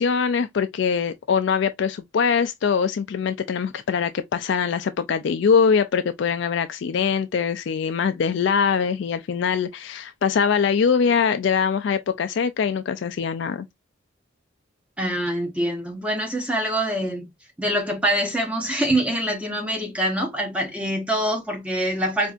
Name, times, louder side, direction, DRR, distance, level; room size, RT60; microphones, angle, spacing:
voice 1, 0.0-13.7, left 6 dB, 60° left, 0.3 m, -22 dB
voice 2, 15.0-17.3 17.6-22.3, right 1 dB, 5° right, 0.7 m, -25 dB
4.4 x 2.6 x 2.3 m
head